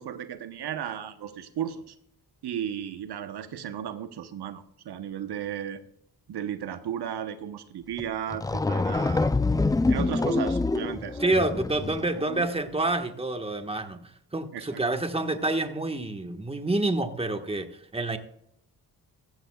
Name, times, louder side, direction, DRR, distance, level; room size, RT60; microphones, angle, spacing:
voice 1, 0.0-1.9 2.4-5.8 6.3-9.4 9.9-11.4 12.0-12.5 14.5-14.8, right 9 dB, 80° right, 10 dB, 1.0 m, -35 dB
sound 1, 8.0-8.1 8.3-12.1, left 3 dB, 10° left, 0.3 m, -26 dB
voice 2, 11.2-18.2, right 2 dB, 15° right, 6 dB, 1.4 m, -28 dB
15.0 x 15.0 x 2.3 m, 0.71 s
cardioid pair, 70°, 39 cm